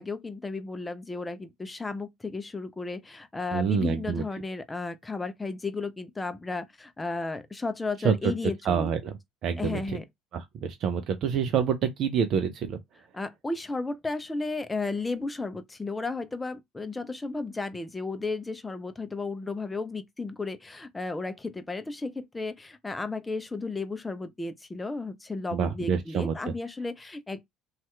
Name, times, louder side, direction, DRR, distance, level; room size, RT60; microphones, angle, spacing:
voice 1, 0.0-8.9 9.6-10.1 13.1-27.4, left 3 dB, 15° left, 0.5 m, -34 dB
voice 2, 3.5-4.2 8.0-8.3 8.7-9.2 9.4-9.8 10.3-12.8 25.5-26.3, right 7 dB, 55° right, 0.5 m, -27 dB
2.7 x 2.4 x 3.1 m
hypercardioid pair, 60°, 0 cm